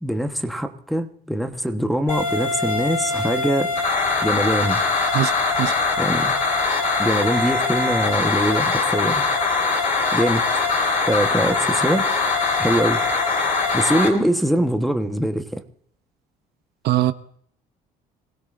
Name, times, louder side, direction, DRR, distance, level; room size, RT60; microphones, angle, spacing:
voice 1, 0.0-3.7 4.2-4.8 6.0-6.3 7.0-9.3 10.1-10.4 11.1-12.1 12.6-13.0 13.7-15.6, equal, ahead, 1.2 m, -23 dB
sound 1, 2.1-14.1, left 4 dB, 45° left, 4.2 m, -22 dB
voice 2, 5.1-5.7 16.8-17.1, right 14 dB, 65° right, 0.7 m, -21 dB
26.5 x 16.5 x 2.6 m
cardioid pair, 95°, 18 cm